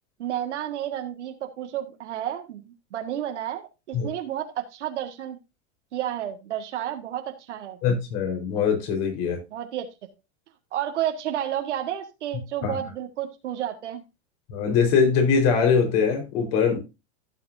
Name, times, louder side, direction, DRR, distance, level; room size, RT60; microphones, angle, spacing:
voice 1, 0.2-5.4 5.9-7.8 9.5-9.9 10.7-14.0, right 11 dB, 85° right, 1.8 m, -31 dB
voice 2, 7.8-9.4 12.6-12.8 14.5-16.8, left 6 dB, 55° left, 4.3 m, -22 dB
15.5 x 6.2 x 2.7 m
hypercardioid pair, 120°, 34 cm